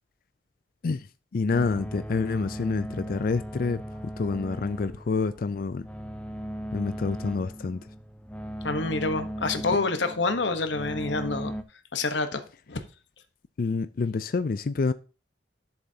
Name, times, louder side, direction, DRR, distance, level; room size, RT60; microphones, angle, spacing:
voice 1, 1.3-3.8 4.2-5.9 6.7-7.8 13.6-14.9, left 4 dB, 50° left, 0.4 m, -27 dB
sound 1, 1.5-11.6, equal, 5° left, 0.6 m, -37 dB
voice 2, 8.6-11.5 11.9-12.8, left 3 dB, 85° left, 1.1 m, -27 dB
11.0 x 7.1 x 2.8 m
head